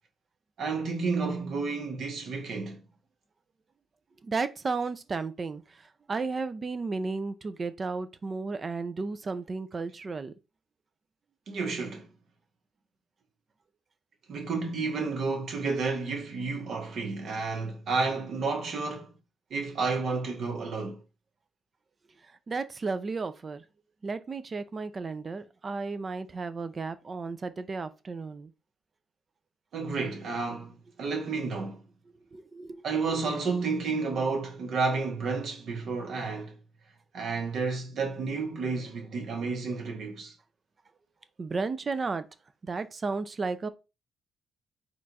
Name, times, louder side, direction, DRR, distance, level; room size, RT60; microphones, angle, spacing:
voice 1, 0.6-2.8 11.5-12.0 14.3-19.1 19.5-21.0 29.7-30.7 31.0-31.8 32.8-36.5 37.1-40.3, right 4 dB, 65° right, 1.3 m, -31 dB
voice 2, 4.2-5.6 6.1-10.3 22.5-23.6 24.0-28.5 32.3-32.8 41.4-42.3 42.6-43.7, right 4 dB, 35° right, 0.5 m, -33 dB
4.4 x 2.5 x 4.1 m
cardioid pair, 90°, 0 cm